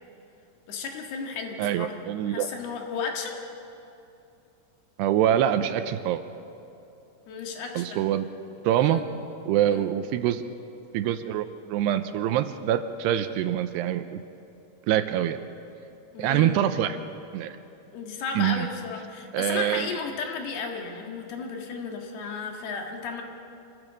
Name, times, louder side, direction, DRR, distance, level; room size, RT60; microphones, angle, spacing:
voice 1, 0.7-2.0 2.3-3.4 7.3-8.1 8.7-9.0 9.7-9.9 16.1-16.6 17.9-23.2, left 5 dB, 65° left, 2 dB, 3.5 m, -34 dB
voice 2, 1.6-2.5 5.0-6.2 7.8-8.3 8.6-9.0 9.5-10.4 10.9-14.2 14.9-15.4 16.2-17.0 17.3-17.6 18.4-18.7 19.3-19.9, right 11 dB, 80° right, 10 dB, 2.7 m, -25 dB
26.0 x 15.5 x 7.4 m, 2.8 s
omnidirectional pair, 5.0 m